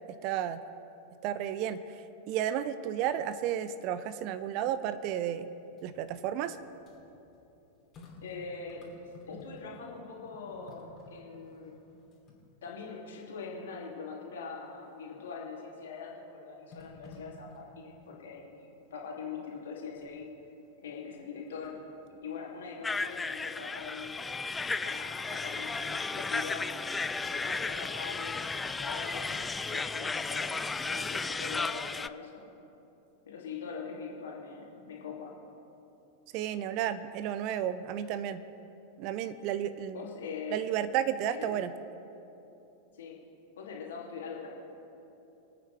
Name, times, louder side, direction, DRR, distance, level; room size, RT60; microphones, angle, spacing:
voice 1, 0.2-0.6 1.2-1.8 2.3-5.5 5.8-6.6 36.3-38.4 39.0-40.0 40.5-41.7, right 10 dB, 45° right, 13 dB, 0.6 m, -32 dB
sound 1, 5.6-9.9 10.2-13.0 13.5-13.6 15.3-15.8 16.7-18.2 19.8-20.3 21.2-21.9 22.3-23.3 23.6-23.7, left 2 dB, 30° left, 2.8 m, -54 dB
voice 2, 8.2-11.7 12.6-20.3 20.8-21.8 22.2-26.7 27.2-29.4 29.7-32.5 33.2-35.3 39.9-40.7 41.3-41.6 42.9-43.2 43.6-44.5, left 5 dB, 60° left, -2 dB, 2.7 m, -42 dB
sound 2, 22.8-32.1, left 4 dB, 10° left, 0.3 m, -34 dB
25.5 x 9.0 x 3.4 m, 2.9 s
figure-of-eight pair, 90°, 0 cm